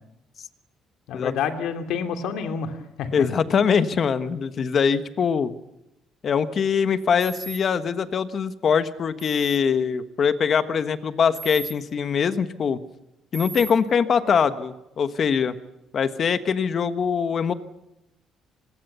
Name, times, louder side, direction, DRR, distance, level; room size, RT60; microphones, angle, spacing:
voice 1, 1.1-3.1, left 7 dB, 70° left, 6 dB, 2.9 m, -28 dB
voice 2, 3.1-5.5 6.2-12.8 13.3-15.5 15.9-17.5, left 6 dB, 35° left, 11 dB, 1.3 m, -23 dB
sound 1, 7.2-7.6 9.2-9.6 11.3-11.7 13.3-13.7, right 5 dB, 20° right, 4.3 m, -36 dB
25.5 x 21.5 x 7.0 m, 0.88 s
cardioid pair, 155°, 0 cm